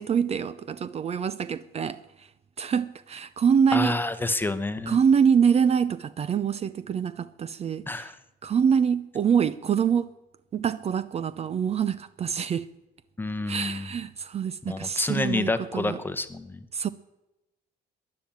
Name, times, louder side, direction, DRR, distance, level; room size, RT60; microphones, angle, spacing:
voice 1, 0.0-2.3 2.6-4.0 4.9-8.1 8.4-10.1 10.5-12.7 13.5-16.0 16.7-16.9, right 7 dB, 40° right, 0.6 m, -25 dB
voice 2, 3.7-5.0 7.9-8.2 13.2-13.9 14.7-16.6, left 2 dB, 10° left, 1.0 m, -28 dB
13.0 x 10.5 x 8.9 m
cardioid pair, 110°, 17 cm